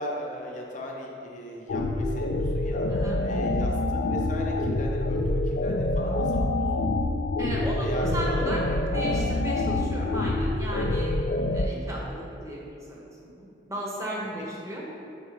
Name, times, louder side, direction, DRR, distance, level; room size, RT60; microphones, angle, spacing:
voice 1, 0.0-2.9 3.2-6.9 7.8-9.1, equal, 40° left, -1 dB, 0.7 m, -38 dB
sound 1, 1.7-11.7, left 2 dB, 60° left, 0.3 m, -26 dB
voice 2, 2.9-3.2 7.4-8.6 8.9-11.2 11.5-12.6 12.9-13.0 13.4-15.0, equal, 15° right, -4 dB, 0.9 m, -35 dB
4.5 x 4.4 x 4.8 m, 2.8 s
head